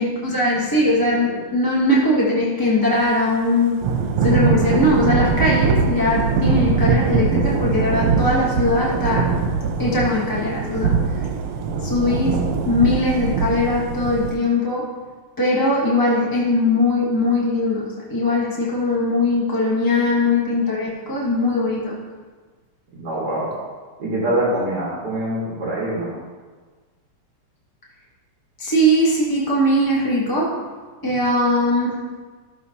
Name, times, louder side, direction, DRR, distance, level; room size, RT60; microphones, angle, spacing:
voice 1, 0.0-3.8 4.2-9.3 9.8-11.2 11.8-14.9 15.4-22.0 28.6-30.6 31.0-32.0, left 1 dB, 20° left, -5 dB, 0.6 m, -20 dB
Thunder / Rain, 3.8-14.3, right 5 dB, 85° right, 1.7 m, -21 dB
voice 2, 23.0-23.5 24.0-26.1, right 1 dB, 50° right, -7 dB, 2.1 m, -24 dB
14.0 x 6.2 x 2.8 m, 1.4 s
omnidirectional pair, 2.4 m